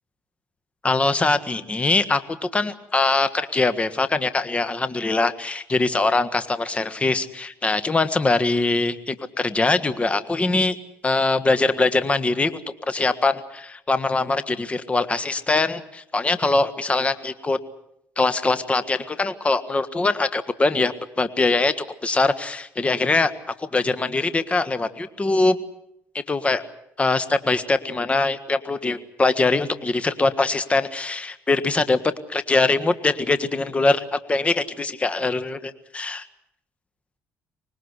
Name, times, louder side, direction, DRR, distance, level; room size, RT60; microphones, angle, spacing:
voice 1, 0.8-10.8 11.0-17.6 18.2-23.3 23.6-25.6 26.3-26.6 27.0-36.3, left 3 dB, 25° left, 12 dB, 1.6 m, -22 dB
25.0 x 20.0 x 8.1 m, 0.77 s
cardioid pair, 90°, 5 cm